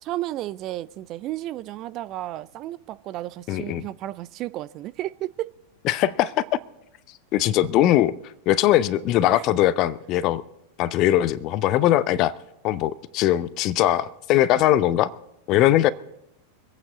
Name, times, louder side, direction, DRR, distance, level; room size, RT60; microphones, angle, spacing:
voice 1, 0.0-5.5 9.4-9.5, right 15 dB, 35° right, 0.4 m, -33 dB
voice 2, 3.5-3.8 5.9-6.4 7.3-8.1 8.5-10.4 10.8-12.3 12.6-15.1 15.5-15.9, left 13 dB, 40° left, 0.6 m, -20 dB
24.5 x 8.9 x 4.0 m
figure-of-eight pair, 90°, 0 cm